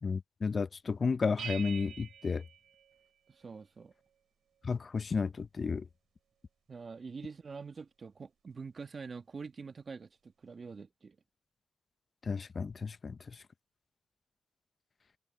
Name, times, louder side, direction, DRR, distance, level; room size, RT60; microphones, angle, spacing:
voice 1, 0.0-2.4 4.6-5.9 12.2-13.2, left 5 dB, 50° left, 0.6 m, -32 dB
sound 1, 1.4-3.6, right 9 dB, 85° right, 5.3 m, -46 dB
voice 2, 3.3-3.9 6.7-11.2, right 5 dB, 50° right, 1.8 m, -45 dB
cardioid pair, 60°, 0 cm